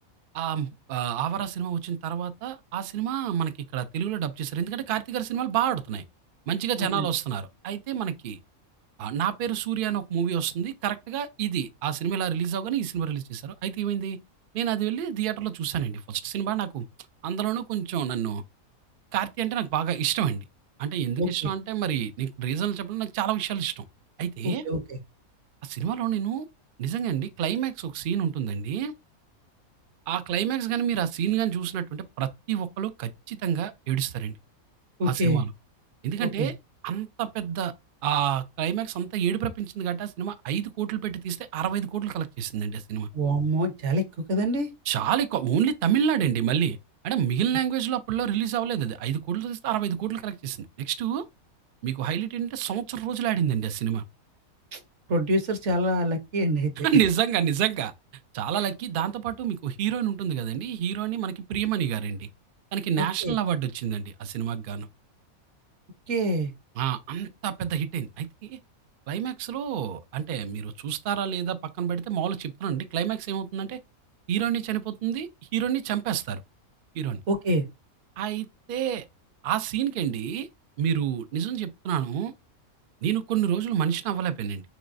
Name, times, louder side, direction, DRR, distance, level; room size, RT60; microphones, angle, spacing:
voice 1, 0.3-6.0 6.5-8.4 9.0-14.2 14.5-16.8 17.2-18.4 19.1-20.4 20.8-23.8 24.2-24.6 25.6-26.5 26.8-28.9 30.1-34.4 35.1-35.5 36.0-36.5 36.8-37.7 38.0-43.1 44.9-46.8 47.0-51.2 51.8-54.0 56.8-57.9 58.3-62.3 62.7-64.9 66.8-68.6 69.1-73.8 74.3-76.4 76.9-77.2 78.2-79.1 79.4-80.5 80.8-82.3 83.0-84.6, right 9 dB, 80° right, 0.4 m, -28 dB
voice 2, 21.2-21.5 24.4-25.0 35.0-35.4 36.2-36.5 43.1-44.0 44.3-44.7 54.7-54.8 55.1-56.7 63.0-63.3 66.1-66.5 77.3-77.6, right 1 dB, 55° right, 1.1 m, -26 dB
6.3 x 3.1 x 2.5 m
omnidirectional pair, 1.5 m